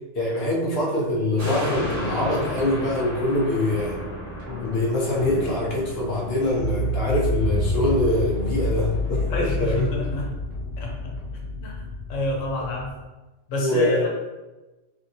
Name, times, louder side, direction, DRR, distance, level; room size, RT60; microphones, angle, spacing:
voice 1, 0.1-4.0 4.6-9.9 13.6-14.0, left 1 dB, 60° left, -3 dB, 0.9 m, -24 dB
sound 1, 1.4-8.0 8.5-8.6, equal, 75° right, 1.4 m, -35 dB
sound 2, 1.7-12.9, left 1 dB, 50° right, 1.0 m, -30 dB
voice 2, 9.3-10.4 10.8-11.1 11.6-11.8 12.1-13.0 13.5-14.1, left 1 dB, 80° left, -1 dB, 1.0 m, -28 dB
2.9 x 2.6 x 2.7 m, 1.1 s
omnidirectional pair, 1.3 m